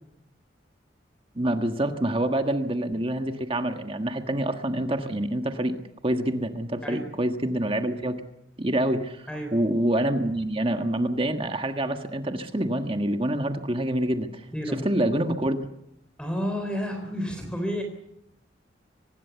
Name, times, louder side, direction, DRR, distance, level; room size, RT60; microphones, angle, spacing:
voice 1, 1.3-5.8 6.0-8.2 8.6-15.6, right 1 dB, 30° right, 6 dB, 1.5 m, -26 dB
voice 2, 16.2-17.8, equal, 5° left, 4 dB, 3.8 m, -30 dB
24.5 x 20.0 x 7.1 m, 0.81 s
head